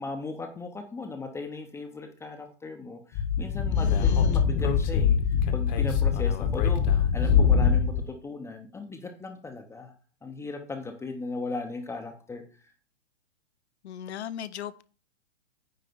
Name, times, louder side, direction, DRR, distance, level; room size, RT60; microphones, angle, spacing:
voice 1, 0.0-9.9 10.2-12.4, left 3 dB, 5° left, 0.7 m, -37 dB
Speech / Wind, 3.2-8.1, left 6 dB, 35° left, 1.1 m, -23 dB
voice 2, 3.7-4.5 13.8-14.8, left 10 dB, 65° left, 0.7 m, -38 dB
9.4 x 3.3 x 6.8 m
figure-of-eight pair, 120°, 36 cm